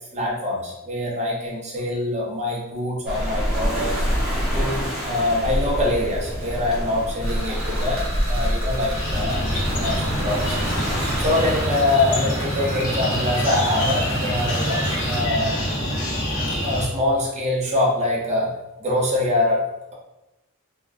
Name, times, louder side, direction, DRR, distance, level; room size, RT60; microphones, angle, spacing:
voice 1, 0.1-4.1 4.5-10.7 11.2-15.6 16.6-19.7, left 2 dB, 30° right, -3 dB, 0.6 m, -24 dB
Waves surf, 3.1-11.7, equal, 5° right, 0.9 m, -26 dB
sound 1, 7.2-15.2, right 1 dB, 90° right, 1.0 m, -35 dB
sound 2, 8.9-16.9, equal, 40° left, 0.8 m, -26 dB
3.4 x 2.1 x 2.3 m, 0.97 s
head